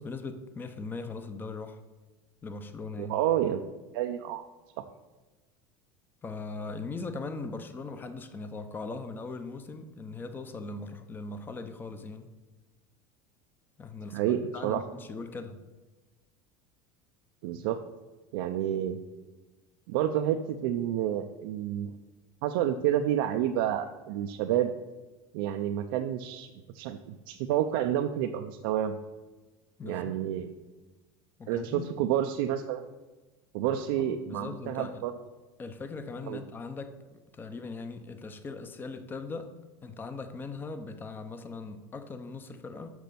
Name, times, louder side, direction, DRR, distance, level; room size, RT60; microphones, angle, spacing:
voice 1, 0.0-1.8 2.4-3.1 6.2-12.3 13.8-15.6 29.8-30.2 31.4-31.9 33.7-35.1 35.6-39.5 39.8-42.9, left 3 dB, 15° left, 9 dB, 0.7 m, -40 dB
voice 2, 3.0-3.6 3.9-4.4 14.1-14.8 17.4-17.8 18.3-19.0 19.9-21.9 22.4-24.7 25.3-26.5 26.7-29.0 29.8-30.5 31.5-32.9 33.5-35.1 36.3-36.4, right 11 dB, 75° right, 5 dB, 0.6 m, -29 dB
6.3 x 6.1 x 6.9 m, 1.2 s
supercardioid pair, 145°, 12 cm